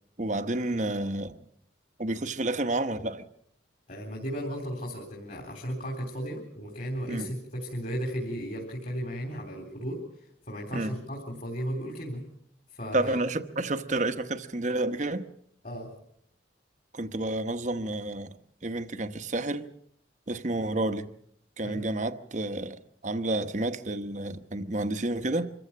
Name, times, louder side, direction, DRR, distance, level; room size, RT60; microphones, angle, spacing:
voice 1, 0.2-1.4 2.0-3.3 7.1-7.3 10.7-10.9 12.9-15.3 16.9-18.4 18.6-19.7 20.3-21.1 21.6-25.5, right 2 dB, 40° right, 1.0 m, -30 dB
voice 2, 3.9-10.0 10.5-12.2 12.7-13.2 15.6-15.9 21.6-21.8, equal, 45° left, 3.9 m, -35 dB
25.5 x 15.0 x 7.4 m
head